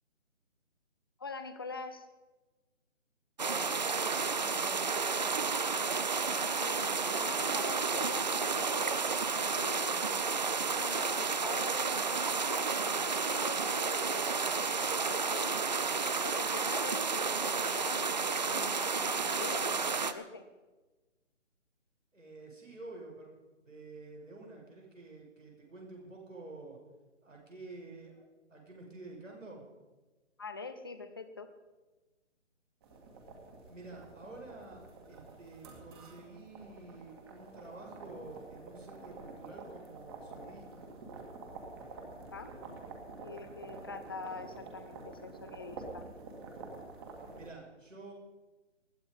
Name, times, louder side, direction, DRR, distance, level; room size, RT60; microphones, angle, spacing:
voice 1, 1.2-2.1 6.4-10.3 10.8-15.7 16.2-20.4 30.4-31.5 42.3-42.5 43.2-46.1, left 4 dB, 20° left, 9 dB, 0.7 m, -44 dB
sound 1, 3.4-20.1, right 5 dB, 35° right, 0.7 m, -31 dB
voice 2, 3.4-5.5 22.1-23.3 23.6-26.8 27.2-29.6 33.7-40.9 47.3-48.1, right 2 dB, 85° right, 0 dB, 6.2 m, -49 dB
sound 2, 32.8-47.5, right 3 dB, 20° right, 2.2 m, -48 dB
20.5 x 13.0 x 5.4 m, 1.2 s
figure-of-eight pair, 155°, 37 cm